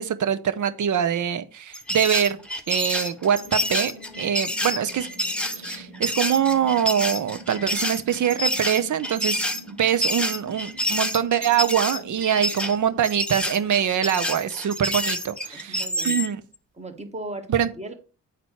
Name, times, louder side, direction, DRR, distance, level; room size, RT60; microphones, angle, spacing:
voice 1, 0.0-2.4 2.7-5.1 5.6-16.4 17.5-17.7, right 9 dB, 45° right, 0.8 m, -24 dB
sound 1, 1.7-16.3, left 1 dB, ahead, 1.1 m, -28 dB
sound 2, 3.3-13.1, equal, 90° right, 2.0 m, -45 dB
voice 2, 15.5-16.2 16.8-17.9, right 2 dB, 15° right, 1.4 m, -37 dB
8.8 x 4.1 x 4.5 m
hypercardioid pair, 40°, 44 cm